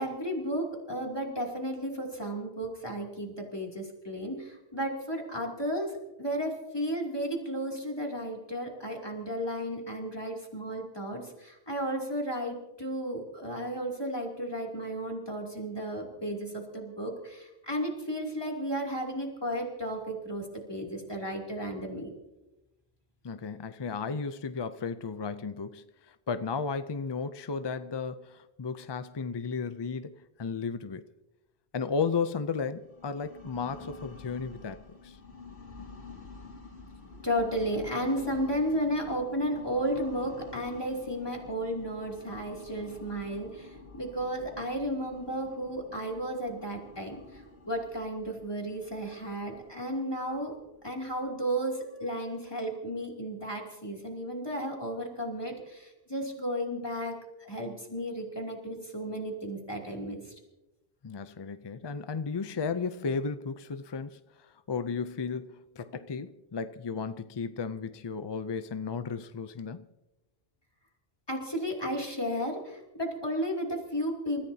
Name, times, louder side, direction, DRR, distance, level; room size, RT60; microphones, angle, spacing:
voice 1, 0.0-5.9 6.2-22.1 37.1-50.6 50.8-60.3 71.3-74.4, equal, 20° left, 2.9 m, -33 dB
voice 2, 23.2-31.0 31.7-35.2 61.0-69.8, left 5 dB, 40° left, 0.3 m, -34 dB
sound 1, 32.8-51.5, left 3 dB, 75° left, 3.0 m, -49 dB
28.5 x 14.5 x 2.8 m
omnidirectional pair, 1.1 m